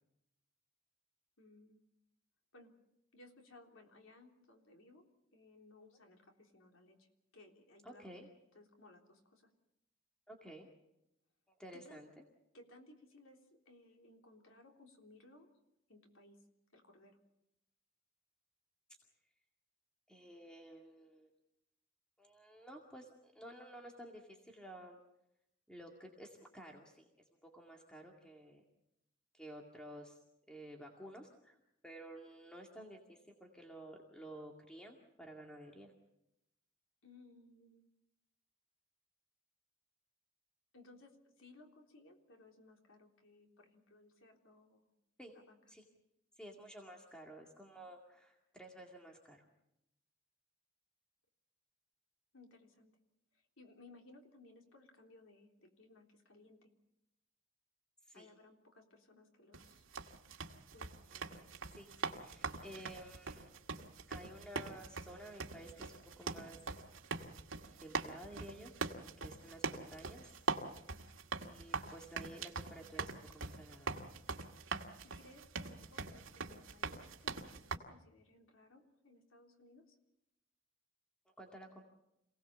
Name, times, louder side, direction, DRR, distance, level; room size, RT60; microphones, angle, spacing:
voice 1, 1.4-1.8 2.5-2.7 3.1-5.1 5.3-7.1 7.3-8.1 8.5-9.5 11.7-12.0 12.5-15.5 15.9-16.4 16.7-17.2 37.0-37.9 40.7-44.9 45.3-45.6 52.3-52.9 53.3-56.7 58.1-59.8 60.7-61.0 74.6-80.0, left 2 dB, 85° left, 2 dB, 3.6 m, -61 dB
voice 2, 7.8-8.3 10.3-10.7 11.5-12.1 20.1-21.3 22.2-25.0 25.7-27.1 27.4-28.6 29.3-30.2 30.5-31.6 31.8-35.9 45.2-45.3 45.7-45.8 46.4-49.5 58.1-58.3 61.1-63.5 64.1-66.6 67.8-68.9 69.2-70.3 71.4-74.0 81.4-81.8, right 1 dB, 5° left, 0 dB, 2.2 m, -53 dB
sound 1, 59.5-77.8, right 4 dB, 80° right, 1.9 m, -43 dB
27.5 x 18.0 x 7.0 m, 0.85 s
head